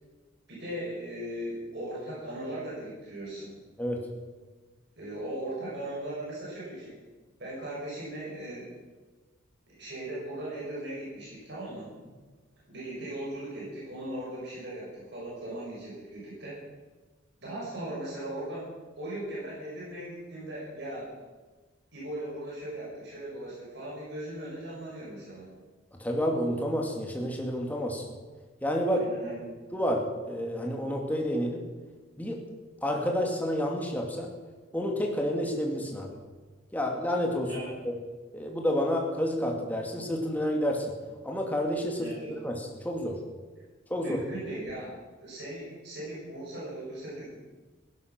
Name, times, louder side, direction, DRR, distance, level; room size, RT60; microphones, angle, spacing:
voice 1, 0.5-3.5 4.9-7.0 7.4-8.7 9.7-11.9 12.7-16.6 17.4-18.7 19.0-21.0 21.9-25.5 28.9-29.6 37.5-37.7 42.0-42.3 44.0-44.9 45.2-47.3, right 1 dB, 55° right, -6 dB, 6.6 m, -38 dB
voice 2, 26.0-28.0 28.6-29.1 29.7-31.7 32.2-32.4 32.8-34.3 34.7-36.2 36.7-37.5 37.8-37.9 38.3-40.9 41.2-42.1 42.4-43.2 43.9-44.2, equal, 10° left, 0 dB, 2.3 m, -29 dB
16.0 x 11.5 x 6.1 m, 1.3 s
head